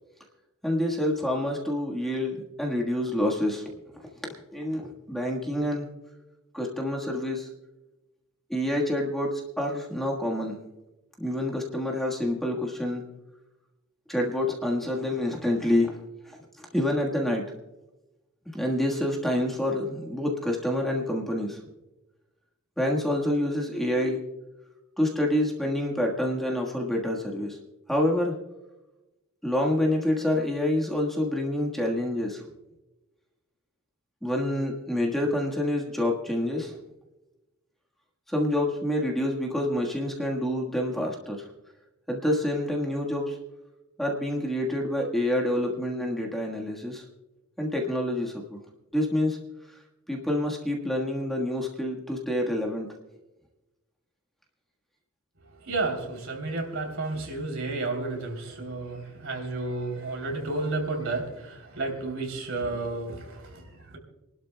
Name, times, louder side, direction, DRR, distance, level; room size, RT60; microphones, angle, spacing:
voice 1, 0.6-3.7 4.0-4.1 4.5-5.9 6.5-7.5 8.5-10.6 11.2-13.0 14.1-17.4 18.5-21.6 22.8-24.2 25.0-27.6 27.9-28.3 29.4-32.4 34.2-36.7 38.3-41.5 42.1-43.4 44.0-47.0 47.6-48.6 48.9-49.4 49.7-49.8 50.1-52.9, left 1 dB, ahead, -2 dB, 1.4 m, -27 dB
voice 2, 55.6-64.0, right 3 dB, 60° right, 3 dB, 3.2 m, -32 dB
28.0 x 12.0 x 2.2 m, 1.0 s
head